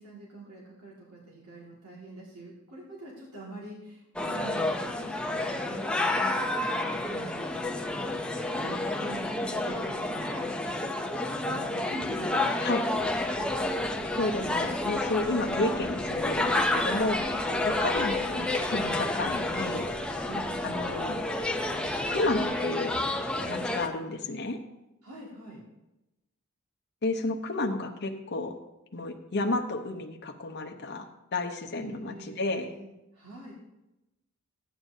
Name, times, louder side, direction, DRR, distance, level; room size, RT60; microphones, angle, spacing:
voice 1, 0.0-8.2 8.5-9.3 9.6-10.4 10.8-12.8 17.4-17.7 20.3-20.4 25.0-25.6 31.7-33.5, right 2 dB, 75° right, -5 dB, 2.0 m, -45 dB
sound 1, 4.2-23.9, left 2 dB, 5° left, 0.5 m, -30 dB
sound 2, 12.9-22.5, equal, 10° right, 2.5 m, -47 dB
voice 2, 14.2-17.2 17.7-19.9 20.6-21.2 22.1-22.9 23.5-24.6 27.0-28.5 28.9-32.7, left 2 dB, 50° left, 3 dB, 0.8 m, -31 dB
13.0 x 8.9 x 2.7 m, 0.95 s
head